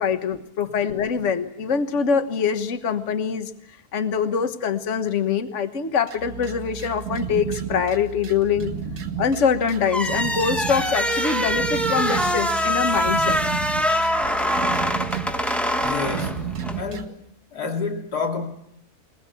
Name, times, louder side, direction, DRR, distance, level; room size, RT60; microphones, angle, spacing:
voice 1, 0.0-3.5 3.9-8.7 9.2-13.4, left 6 dB, 50° left, 1.6 m, -24 dB
sound 1, 6.1-17.1, right 5 dB, 85° right, 2.0 m, -38 dB
sound 2, 7.0-17.1, right 8 dB, 50° right, 2.0 m, -33 dB
sound 3, 9.9-16.8, equal, ahead, 1.2 m, -24 dB
voice 2, 15.8-17.2 17.5-18.5, left 4 dB, 80° left, 3.2 m, -29 dB
21.5 x 21.0 x 8.3 m
omnidirectional pair, 1.6 m